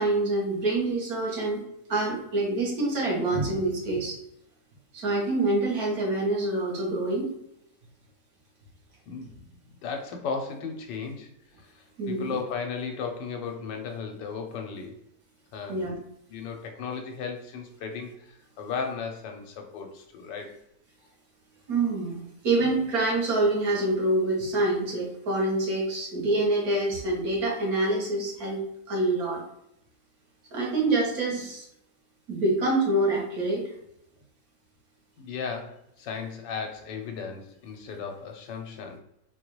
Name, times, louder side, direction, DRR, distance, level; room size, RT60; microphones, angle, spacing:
voice 1, 0.0-1.6 1.9-4.2 4.9-7.3 12.0-12.4 15.7-16.0 21.7-28.6 28.9-29.4 30.5-31.7 32.3-33.7, right 2 dB, 60° right, -2 dB, 1.4 m, -26 dB
voice 2, 9.1-9.4 9.8-11.3 11.6-15.0 15.5-16.0 16.3-20.6 35.2-39.0, left 5 dB, 90° left, 4 dB, 1.3 m, -35 dB
4.0 x 2.3 x 3.0 m, 0.79 s
omnidirectional pair, 1.9 m